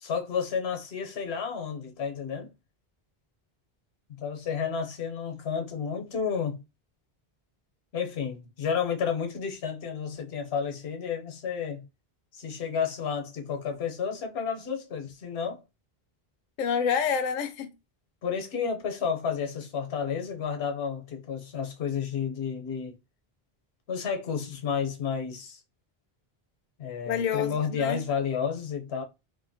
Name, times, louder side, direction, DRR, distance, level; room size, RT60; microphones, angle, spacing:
voice 1, 0.0-2.5 4.1-6.6 7.9-11.8 12.3-15.6 18.2-23.0 23.9-25.6 26.8-29.0, left 6 dB, 90° left, 1.0 m, -31 dB
voice 2, 16.6-17.7 27.1-28.0, left 7 dB, 55° left, 0.6 m, -28 dB
2.8 x 2.1 x 2.6 m
omnidirectional pair, 1.0 m